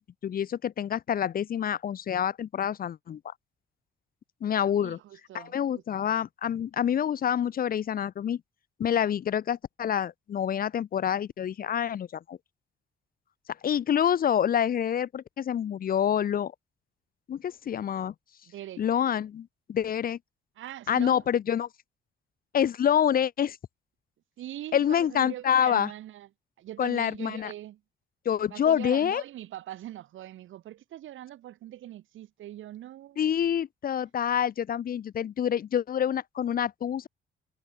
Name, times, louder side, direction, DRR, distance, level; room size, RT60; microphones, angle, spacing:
voice 1, 0.0-3.2 4.4-5.0 5.3-8.4 8.8-12.4 13.6-16.5 17.3-18.1 18.8-20.2 20.9-21.7 22.5-23.6 24.7-25.9 26.8-27.5 28.3-29.2 33.2-37.1, left 9 dB, 45° left, 0.6 m, -27 dB
voice 2, 4.7-6.1 18.5-18.8 20.6-21.3 24.4-26.3 26.6-27.8 28.5-33.3, right 13 dB, 80° right, 3.3 m, -42 dB
cardioid pair, 90°, 20 cm